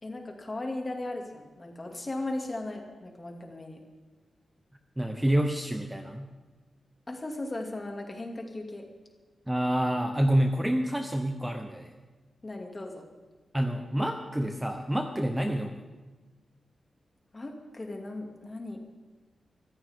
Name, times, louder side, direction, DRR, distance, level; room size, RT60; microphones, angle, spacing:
voice 1, 0.0-3.8 7.1-8.9 12.4-13.1 17.3-18.8, left 2 dB, 25° left, 2 dB, 2.4 m, -37 dB
voice 2, 5.0-6.3 9.5-11.9 13.5-15.8, right 1 dB, 10° right, 4 dB, 0.8 m, -28 dB
24.5 x 14.0 x 3.7 m, 1.3 s
wide cardioid pair, 150°, 0 cm